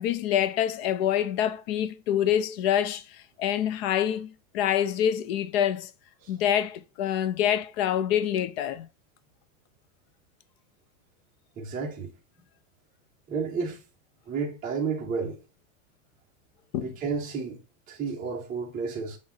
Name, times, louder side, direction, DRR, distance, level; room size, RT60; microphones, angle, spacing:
voice 1, 0.0-5.9 6.3-8.9 16.7-16.9, left 10 dB, 50° left, 0.8 m, -26 dB
voice 2, 11.6-12.1 13.3-13.8 14.3-15.4 16.8-17.6 17.9-19.2, right 5 dB, 20° right, 1.3 m, -31 dB
8.8 x 3.1 x 5.7 m
supercardioid pair, 155°, 39 cm